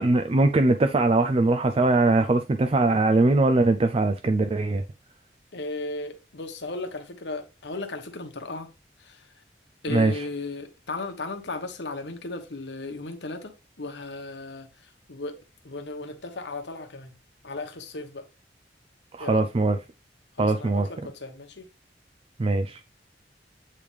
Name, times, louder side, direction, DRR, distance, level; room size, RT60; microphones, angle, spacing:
voice 1, 0.0-4.8 9.9-10.1 19.1-19.8 20.4-20.9 22.4-22.8, right 2 dB, 35° right, 0.4 m, -21 dB
voice 2, 5.5-8.7 9.0-9.3 9.8-15.4 15.6-17.1 17.4-18.3 19.2-19.4 20.4-21.7, left 2 dB, 80° left, 1.2 m, -36 dB
8.7 x 3.3 x 3.4 m
head